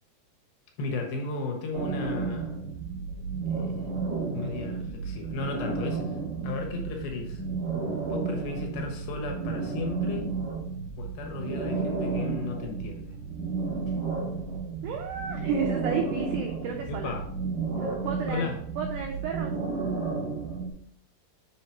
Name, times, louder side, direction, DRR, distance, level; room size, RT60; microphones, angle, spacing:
voice 1, 0.8-2.6 3.5-3.8 4.3-6.2 6.4-7.4 8.1-10.3 11.0-13.1 16.9-17.2 18.3-18.6, left 4 dB, 75° left, 2 dB, 3.0 m, -35 dB
sound 1, 1.7-20.7, right 4 dB, 50° right, 3.2 m, -32 dB
voice 2, 14.8-17.1 17.8-18.5 18.8-19.5, right 6 dB, 85° right, 2 dB, 1.8 m, -32 dB
6.6 x 4.7 x 4.5 m, 0.66 s
omnidirectional pair, 4.5 m